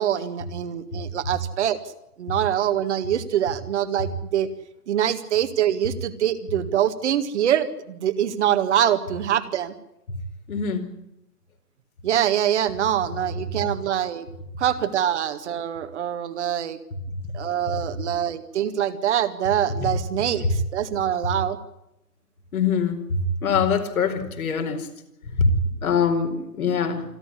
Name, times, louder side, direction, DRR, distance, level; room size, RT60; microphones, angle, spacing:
voice 1, 0.0-1.8 2.2-4.5 4.9-9.7 12.0-14.3 14.6-16.8 17.3-21.6, right 10 dB, 45° right, 9 dB, 2.0 m, -24 dB
voice 2, 10.5-10.9 20.4-20.5 22.5-24.9 25.2-25.5 25.8-27.0, left 5 dB, 60° left, 5 dB, 4.7 m, -23 dB
27.0 x 12.0 x 9.9 m, 0.83 s
hypercardioid pair, 140°, 47 cm